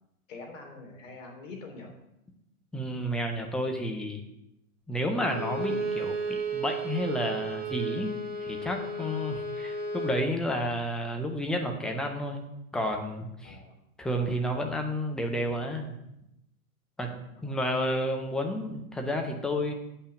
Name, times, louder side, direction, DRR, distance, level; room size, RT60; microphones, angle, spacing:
voice 1, 0.3-1.9 13.4-13.7 17.4-17.6, left 3 dB, 55° left, 2 dB, 3.3 m, -45 dB
voice 2, 2.7-4.2 4.9-8.1 8.4-13.6 14.0-15.9 17.0-17.1 17.4-19.7, equal, ahead, 3 dB, 0.4 m, -31 dB
Bowed string instrument, 5.2-10.2, right 3 dB, 20° right, 1.7 m, -33 dB
8.4 x 5.8 x 7.7 m, 0.85 s
hypercardioid pair, 120°, 44 cm